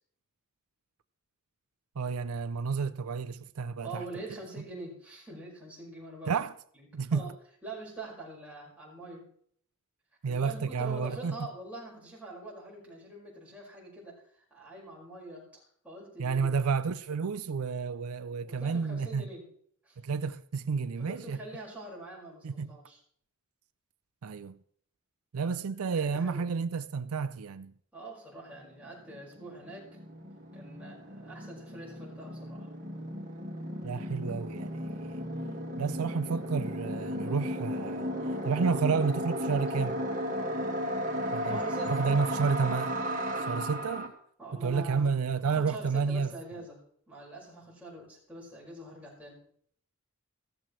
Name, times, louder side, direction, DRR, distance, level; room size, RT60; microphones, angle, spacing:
voice 1, 2.0-4.0 6.3-6.5 6.9-7.3 10.2-11.3 16.2-19.3 20.0-21.4 22.4-22.7 24.2-24.6 25.3-27.7 33.8-35.3 35.8-38.1 38.4-40.1 41.3-41.6 41.9-43.0 43.4-44.1 44.5-46.3, right 5 dB, 85° right, 0.5 m, -31 dB
voice 2, 3.8-6.4 6.8-7.3 7.6-9.3 10.2-16.6 18.4-19.5 19.8-20.0 21.0-23.0 25.4-25.5 25.9-26.5 27.9-29.9 30.5-32.7 41.5-42.1 44.4-45.1 45.4-49.4, right 2 dB, 5° right, 5.2 m, -44 dB
sound 1, 28.6-28.7 28.8-44.1, equal, 35° right, 2.0 m, -35 dB
16.0 x 13.5 x 3.2 m
head